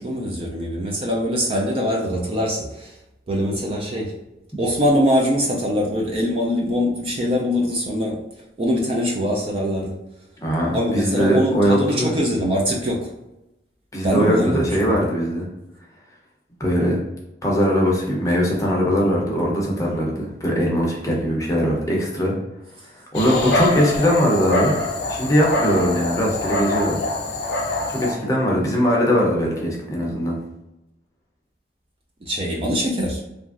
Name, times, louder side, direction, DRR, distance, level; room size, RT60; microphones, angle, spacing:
voice 1, 0.0-2.9 3.3-4.1 4.6-8.2 8.6-10.0 10.7-13.1 14.0-15.0 32.2-33.2, equal, 30° right, -1 dB, 0.3 m, -22 dB
voice 2, 10.4-12.1 13.9-15.5 16.6-17.0 17.4-22.3 23.1-24.7 25.1-27.0 27.9-30.4, equal, 15° left, -3 dB, 0.6 m, -20 dB
Dog, 23.1-28.1, left 2 dB, 60° left, 0.5 m, -24 dB
2.9 x 2.4 x 2.4 m, 0.94 s
head